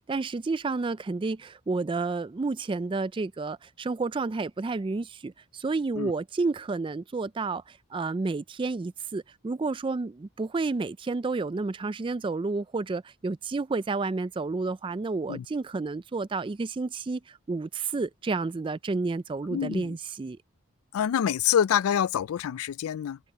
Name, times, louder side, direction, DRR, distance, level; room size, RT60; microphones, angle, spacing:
voice 1, 0.0-20.4, right 3 dB, 25° right, 0.3 m, -30 dB
voice 2, 19.5-20.0 20.9-23.2, left 9 dB, 80° left, 0.3 m, -26 dB
head